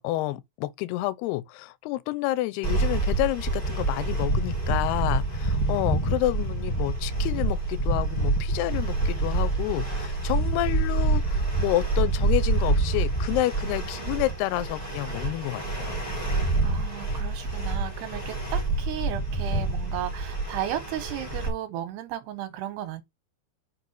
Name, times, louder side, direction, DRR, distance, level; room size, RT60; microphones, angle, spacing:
voice 1, 0.0-16.0, left 16 dB, 85° left, 2.7 m, -29 dB
sound 1, 2.6-21.5, right 2 dB, 10° left, 2.2 m, -27 dB
voice 2, 16.6-23.0, right 11 dB, 80° right, 3.2 m, -34 dB
6.6 x 5.3 x 4.4 m
omnidirectional pair, 4.7 m